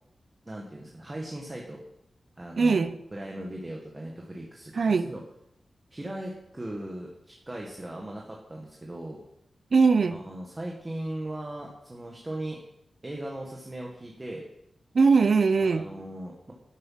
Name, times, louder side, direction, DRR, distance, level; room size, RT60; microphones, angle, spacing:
voice 1, 0.4-1.8 2.4-5.2 5.9-9.2 10.1-12.6 13.0-14.4 15.6-16.5, right 1 dB, 20° right, -1 dB, 1.6 m, -38 dB
voice 2, 2.6-3.0 4.8-5.1 9.7-10.2 14.9-15.9, right 4 dB, 50° right, 11 dB, 0.7 m, -21 dB
12.5 x 7.7 x 5.8 m, 0.78 s
wide cardioid pair, 155°, 0 cm